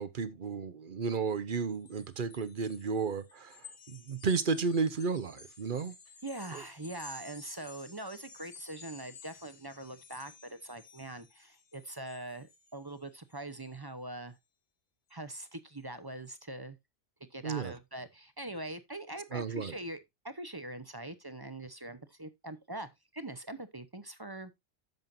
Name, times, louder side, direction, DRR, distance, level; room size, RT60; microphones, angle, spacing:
voice 1, 0.0-3.6 3.9-5.9 17.4-17.7 19.3-19.7, right 5 dB, 50° right, 0.9 m, -33 dB
sound 1, 1.7-13.8, left 4 dB, 70° left, 1.4 m, -54 dB
voice 2, 6.2-14.4 15.1-16.8 17.3-20.0 20.2-24.5, right 1 dB, 25° right, 0.7 m, -43 dB
10.5 x 7.4 x 2.6 m
omnidirectional pair, 1.2 m